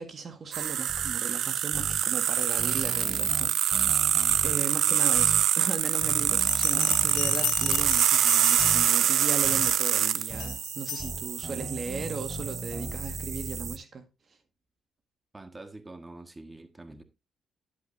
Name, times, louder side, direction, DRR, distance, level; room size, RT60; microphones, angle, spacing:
voice 1, 0.0-3.9 4.4-14.0, right 5 dB, 50° right, 1.6 m, -37 dB
sound 1, 0.5-13.8, right 9 dB, 70° right, 0.5 m, -26 dB
sound 2, 0.9-1.1 1.7-2.0 2.6-4.6 5.2-5.4 6.0-8.0 8.6-8.8 9.4-9.7 10.3-10.6 11.0-13.8, equal, 5° left, 5.0 m, -38 dB
Bell, 6.4-9.1 9.6-9.9 10.4-11.1, left 12 dB, 80° left, 1.5 m, -35 dB
voice 2, 15.3-17.0, right 2 dB, 20° right, 1.6 m, -45 dB
10.5 x 8.8 x 2.7 m
supercardioid pair, 65°, 0 cm